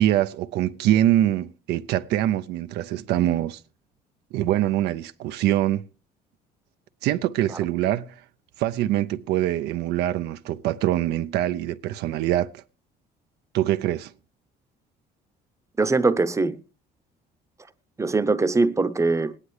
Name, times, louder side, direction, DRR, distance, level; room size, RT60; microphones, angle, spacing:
voice 1, 0.0-3.6 4.3-5.9 7.0-8.1 8.6-12.6 13.5-14.1, right 13 dB, 80° right, 0.5 m, -24 dB
voice 2, 15.8-16.6 18.0-19.3, right 3 dB, 15° right, 0.7 m, -22 dB
20.5 x 9.8 x 3.2 m
cardioid pair, 110°, 17 cm